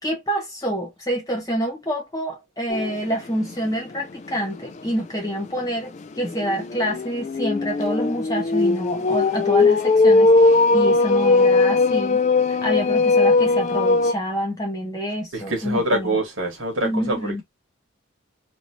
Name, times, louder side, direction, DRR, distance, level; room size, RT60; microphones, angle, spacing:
voice 1, 0.0-12.2 12.5-16.2 16.8-17.4, equal, 15° left, 1.3 m, -27 dB
sound 1, 2.7-3.1 3.5-3.6 4.0-4.1 6.2-14.1, left 3 dB, 35° left, 0.3 m, -19 dB
voice 2, 15.3-17.4, right 1 dB, 75° right, 1.4 m, -25 dB
3.1 x 2.6 x 2.7 m
head